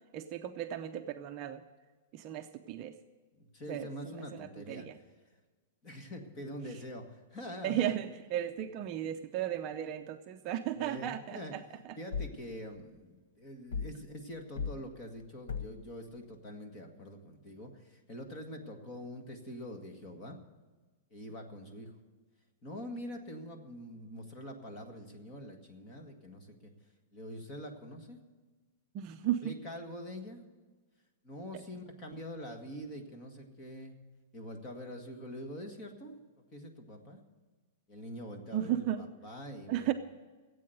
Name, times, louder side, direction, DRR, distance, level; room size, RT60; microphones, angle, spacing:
voice 1, 0.1-1.6 2.1-3.0 3.7-5.0 7.6-11.6 28.9-29.5 38.5-39.0 39.7-39.9, right 12 dB, 30° right, 6 dB, 0.6 m, -35 dB
voice 2, 3.4-4.9 5.8-8.0 10.8-11.5 12.0-20.4 21.1-21.9 22.6-26.7 27.1-28.2 29.4-30.4 31.2-33.9 34.3-36.2 36.5-37.2 37.9-39.9, equal, 25° left, 4 dB, 1.8 m, -45 dB
sound 1, 12.1-12.4 13.7-14.0 14.6-14.8 15.5-15.8, left 5 dB, 80° left, 0.8 m, -37 dB
16.0 x 8.6 x 7.9 m, 1.3 s
supercardioid pair, 170°, 0 cm